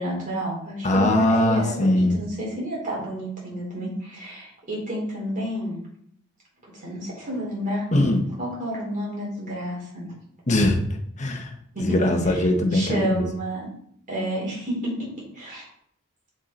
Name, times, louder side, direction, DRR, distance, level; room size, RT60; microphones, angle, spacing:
voice 1, 0.0-5.8 6.7-7.9 8.4-10.0 11.7-12.2 12.7-13.7 14.1-15.1 15.3-15.7, equal, 35° right, -4 dB, 4.1 m, -30 dB
voice 2, 0.8-2.2 7.9-8.2 10.5-11.5 11.8-13.2, left 1 dB, 35° left, 3 dB, 1.3 m, -21 dB
7.7 x 7.4 x 4.0 m, 0.68 s
head